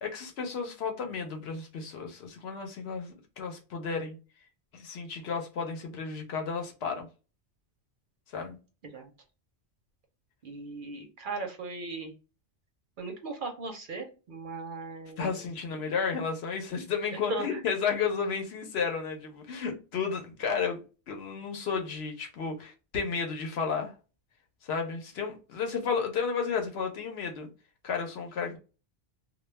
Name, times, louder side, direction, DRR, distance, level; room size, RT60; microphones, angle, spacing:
voice 1, 0.0-4.2 4.7-7.1 8.3-8.6 15.2-23.9 24.6-27.5 27.8-28.6, left 5 dB, 70° left, 0.9 m, -32 dB
voice 2, 10.4-12.1 13.0-15.4 17.1-17.6, right 2 dB, 55° right, 0.7 m, -38 dB
2.2 x 2.1 x 3.1 m
omnidirectional pair, 1.1 m